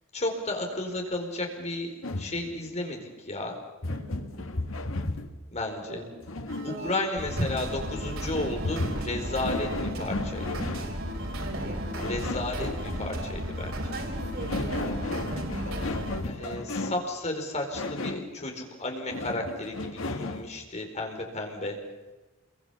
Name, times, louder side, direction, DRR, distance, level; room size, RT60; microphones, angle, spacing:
voice 1, 0.1-3.5 5.5-6.0 6.6-10.5 12.0-13.7 16.3-21.8, left 2 dB, 35° left, 2 dB, 4.7 m, -33 dB
sound 1, 2.0-2.4 3.8-5.4 6.2-6.9 8.3-10.9 12.0-13.1 14.2-17.1 17.7-18.3 19.1-20.5, left 2 dB, 80° left, 1.7 m, -34 dB
voice 2, 3.9-4.4 5.8-6.2 6.5-7.1 11.4-12.1 13.8-16.6, right 2 dB, 55° right, 1 dB, 5.0 m, -42 dB
sound 2, 6.5-16.2, equal, 85° right, 5.2 m, -34 dB
27.5 x 23.0 x 7.1 m, 1.1 s
head